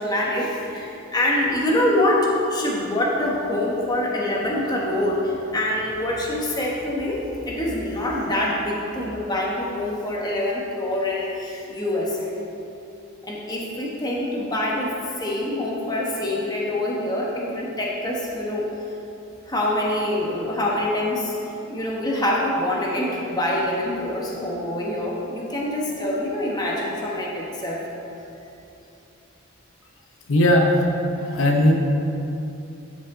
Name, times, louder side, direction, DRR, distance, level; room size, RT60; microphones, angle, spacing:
voice 1, 0.0-12.3 13.2-14.9 15.2-18.7 19.5-21.4 21.7-27.8, left 1 dB, 20° left, -3 dB, 1.1 m, -25 dB
voice 2, 30.3-30.7 31.2-31.7, left 1 dB, 65° left, 1 dB, 0.8 m, -17 dB
13.0 x 5.2 x 3.7 m, 2.9 s
head